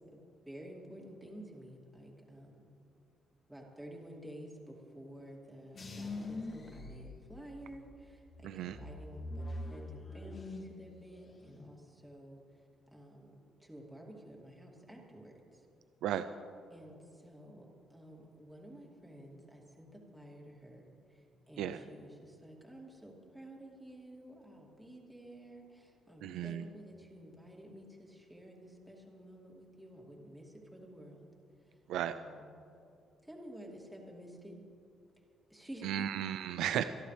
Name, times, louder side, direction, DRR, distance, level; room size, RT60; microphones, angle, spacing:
voice 1, 0.1-2.7 3.5-12.4 12.9-13.3 13.6-15.6 16.7-31.3 32.1-32.6 33.2-34.5 35.5-36.1, equal, 5° right, -2 dB, 2.6 m, -51 dB
sound 1, 5.7-7.8 8.2-10.8 11.1-11.7, left 2 dB, 40° left, 2.2 m, -43 dB
voice 2, 8.4-8.8 16.0-16.3 21.6-21.8 26.2-26.7 31.9-32.1 35.8-36.8, right 10 dB, 85° right, 11 dB, 0.4 m, -34 dB
26.0 x 11.0 x 3.3 m, 2.6 s
cardioid pair, 90°, 0 cm